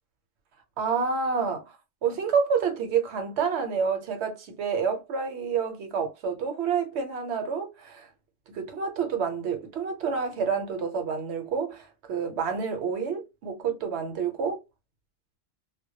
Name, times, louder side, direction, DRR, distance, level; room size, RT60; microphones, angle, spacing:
voice 1, 0.8-1.7 2.0-8.1 8.5-14.6, right 6 dB, 70° right, 0.9 m, -28 dB
2.1 x 2.1 x 2.7 m
omnidirectional pair, 1.2 m